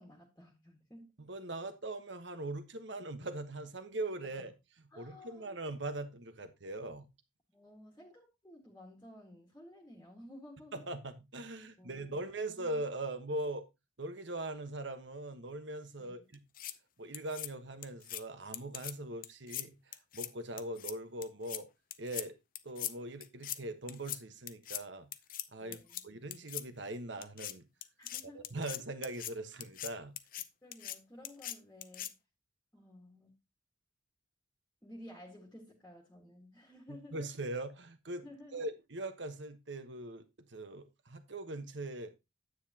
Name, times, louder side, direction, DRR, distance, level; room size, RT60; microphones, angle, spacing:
voice 1, 0.0-1.2 4.4-4.5 4.9-5.5 7.5-10.8 11.8-12.7 16.0-16.1 25.6-26.0 28.0-28.5 30.6-32.1 32.7-33.4 34.8-37.3 38.2-38.7, left 1 dB, 15° left, 1.7 m, -54 dB
voice 2, 1.2-7.0 10.7-13.6 14.0-16.4 17.0-21.7 22.0-22.3 22.6-25.1 25.5-25.8 26.0-27.7 28.3-30.1 36.9-38.2 38.5-40.2 40.5-42.1, right 2 dB, 65° right, 1.2 m, -41 dB
sound 1, 16.3-16.7 17.1-17.5 17.8-18.2 18.5-18.9 19.2-19.7 19.9-20.3 20.6-20.9 21.2-21.6 21.9-22.3 22.6-22.9 23.2-23.6 23.9-24.2 24.5-24.8 25.1-25.5 25.7-26.0 26.3-26.6 27.2-27.5 27.8-29.3 29.6-29.9 30.2-30.5 30.7-31.0 31.3-31.6 31.8-32.1, left 13 dB, 45° left, 0.6 m, -40 dB
9.7 x 8.6 x 2.9 m
head